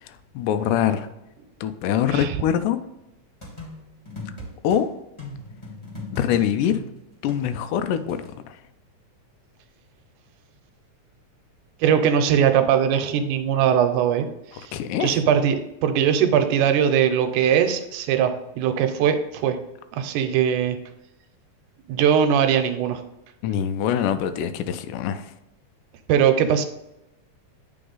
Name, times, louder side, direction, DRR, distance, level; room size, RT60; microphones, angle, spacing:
voice 1, 0.0-1.1 1.6-2.8 4.6-4.9 6.1-6.8 7.2-8.6 14.5-15.2 23.4-25.3, left 9 dB, 90° left, 10 dB, 2.1 m, -24 dB
sound 1, 3.4-4.8 5.2-8.3, left 2 dB, 15° left, 1.0 m, -38 dB
voice 2, 11.8-14.3 14.5-19.6 19.9-20.8 21.9-23.0 26.1-26.7, right 8 dB, 85° right, 7 dB, 2.1 m, -20 dB
8.5 x 3.9 x 3.9 m, 0.91 s
omnidirectional pair, 3.7 m